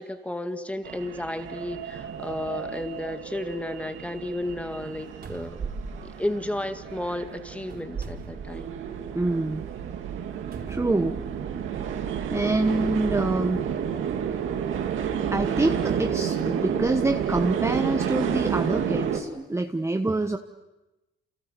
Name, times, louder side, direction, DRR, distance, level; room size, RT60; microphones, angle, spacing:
voice 1, 0.0-5.6 6.0-8.7, left 1 dB, 5° left, 8 dB, 2.1 m, -33 dB
sound 1, 0.8-19.2, right 8 dB, 80° right, 2.4 m, -30 dB
sound 2, 4.8-4.9 5.2-6.9 7.6-9.0 9.5-9.6 10.5-11.6 12.6-12.7 15.8-17.5 18.2-18.3, right 5 dB, 55° right, 4.5 m, -39 dB
voice 2, 9.1-9.6 10.7-11.2 12.3-13.6 15.3-20.4, right 2 dB, 15° right, 6 dB, 1.1 m, -26 dB
29.0 x 28.5 x 6.8 m, 1.0 s
cardioid pair, 90°, 20 cm